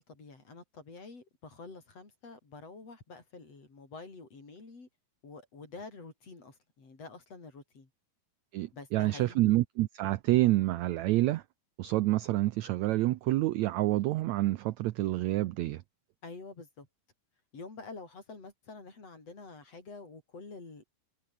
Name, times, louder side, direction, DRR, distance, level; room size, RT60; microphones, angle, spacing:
voice 1, 0.0-4.9 5.2-7.9 8.7-9.4 16.2-16.9 17.5-20.9, left 3 dB, 45° left, 6.5 m, -48 dB
voice 2, 8.5-11.4 11.8-15.8, right 17 dB, 80° right, 1.6 m, -28 dB
omnidirectional pair, 3.9 m